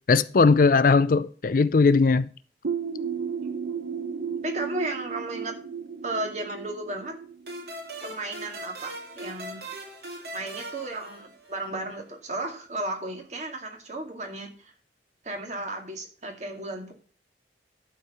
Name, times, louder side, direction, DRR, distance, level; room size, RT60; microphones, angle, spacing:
voice 1, 0.1-2.3, left 4 dB, 50° left, 0.4 m, -19 dB
sound 1, 2.6-8.2, right 6 dB, 90° right, 1.1 m, -34 dB
voice 2, 4.4-5.5 6.0-7.2 8.0-9.7 10.3-14.7 15.2-16.9, right 2 dB, 40° right, 2.2 m, -34 dB
sound 2, 7.5-11.8, right 1 dB, 60° right, 3.2 m, -40 dB
12.0 x 4.8 x 6.7 m
head